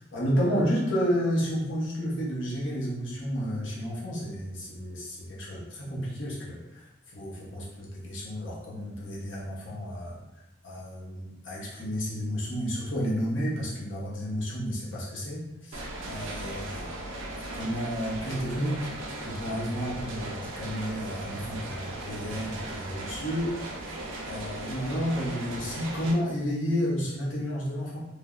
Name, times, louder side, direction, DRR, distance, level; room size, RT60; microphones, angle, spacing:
voice 1, 0.0-6.9 7.1-10.2 10.6-16.9 17.5-18.9 19.2-24.0 24.2-28.0, equal, 70° left, -5 dB, 0.8 m, -31 dB
sound 1, 15.7-26.1, right 2 dB, 80° right, 0.5 m, -38 dB
3.2 x 2.1 x 2.4 m, 0.93 s
head